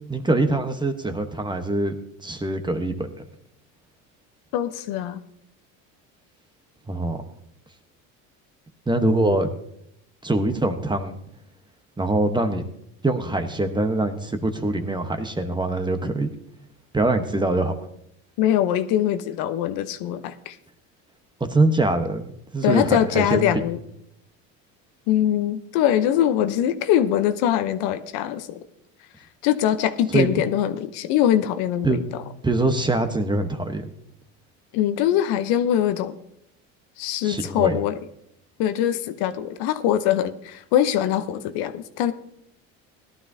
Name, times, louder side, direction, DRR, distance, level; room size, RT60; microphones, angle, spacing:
voice 1, 0.1-1.9 2.2-3.1 6.9-7.2 8.9-9.5 10.2-11.2 12.0-12.6 13.0-16.3 16.9-17.7 21.5-23.6 30.1-30.3 31.8-32.1 32.4-33.9 37.2-37.7, right 2 dB, 10° right, 7 dB, 1.1 m, -23 dB
voice 2, 4.5-5.2 18.4-20.5 22.6-23.8 25.1-28.6 29.4-32.2 34.7-36.2 37.0-38.0 38.6-42.1, left 11 dB, 70° left, 11 dB, 0.9 m, -22 dB
17.0 x 12.0 x 2.7 m, 0.74 s
supercardioid pair, 105°, 39 cm